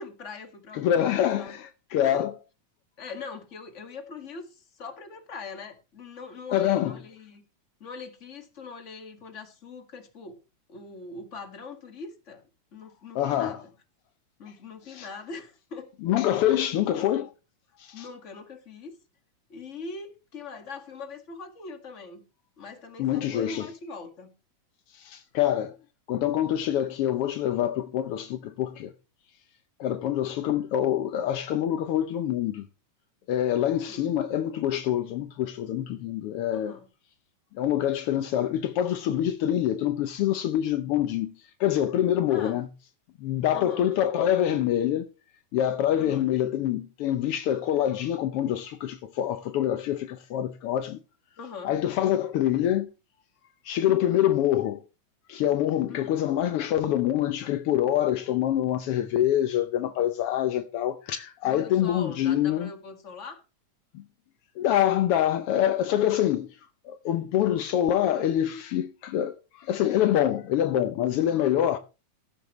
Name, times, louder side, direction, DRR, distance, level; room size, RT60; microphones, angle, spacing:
voice 1, 0.0-1.5 2.0-2.3 3.0-7.4 7.8-10.4 10.7-12.4 12.7-13.7 14.4-15.9 16.3-16.4 16.9-17.3 17.9-19.0 19.5-22.2 22.6-24.3 33.9-34.1 36.5-36.9 42.3-42.6 43.5-43.9 45.9-46.3 51.4-51.8 55.9-56.2 61.5-63.4 71.3-71.5, left 4 dB, 30° left, 1.7 m, -42 dB
voice 2, 0.7-2.3 6.5-6.9 13.1-13.6 14.9-15.1 16.0-17.3 17.8-18.1 23.0-23.7 25.0-25.7 26.1-28.9 29.8-32.7 33.3-36.8 37.5-41.3 41.6-42.7 43.2-45.1 45.5-51.0 51.6-52.9 53.6-54.8 55.3-62.7 63.9-64.0 64.6-66.5 66.8-71.8, left 11 dB, 85° left, 1.2 m, -25 dB
15.0 x 11.5 x 3.1 m
omnidirectional pair, 3.5 m